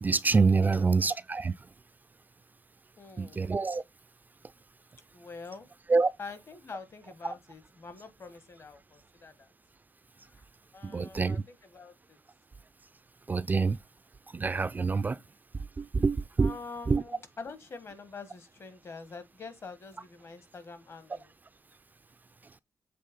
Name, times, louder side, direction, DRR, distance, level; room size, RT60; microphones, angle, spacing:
voice 1, 0.0-1.5 3.2-3.8 5.9-6.1 10.8-11.4 13.3-13.8 14.3-15.2 15.8-16.5 16.9-17.0, right 4 dB, 25° right, 0.3 m, -26 dB
voice 2, 0.5-0.9 3.0-3.4 5.1-5.7 6.2-9.5 10.3-10.5 10.7-12.2 16.4-21.3, left 4 dB, 45° left, 1.3 m, -45 dB
7.6 x 3.5 x 5.1 m
wide cardioid pair, 115°, 6 cm